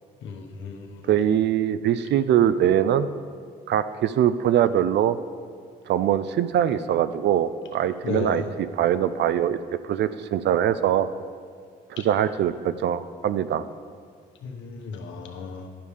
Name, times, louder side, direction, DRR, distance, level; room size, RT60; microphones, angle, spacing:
voice 1, 0.2-1.0 8.0-8.5 14.4-15.7, left 5 dB, 75° left, 3 dB, 1.0 m, -34 dB
voice 2, 1.1-3.1 3.7-5.2 5.9-9.6 9.8-11.1 11.9-13.6, right 10 dB, 65° right, 13 dB, 0.5 m, -22 dB
11.0 x 5.4 x 4.9 m, 2.1 s
supercardioid pair, 55°, 20 cm